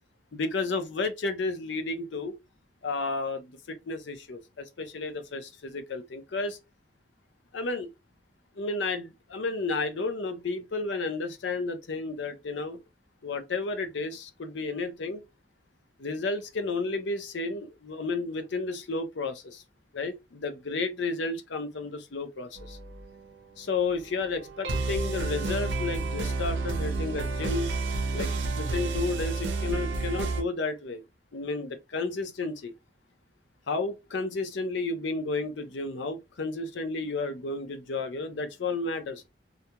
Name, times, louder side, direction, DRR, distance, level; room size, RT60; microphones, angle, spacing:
voice 1, 0.3-2.3 2.8-6.6 7.5-7.9 8.6-12.8 13.2-15.2 16.0-19.6 19.9-22.8 23.6-27.7 28.1-28.3 28.6-31.0 31.3-32.7 33.7-39.2, left 3 dB, 70° left, 0.5 m, -32 dB
sound 1, 22.6-23.3 23.7-30.4, right 3 dB, 65° right, 0.7 m, -30 dB
2.3 x 2.2 x 2.8 m
head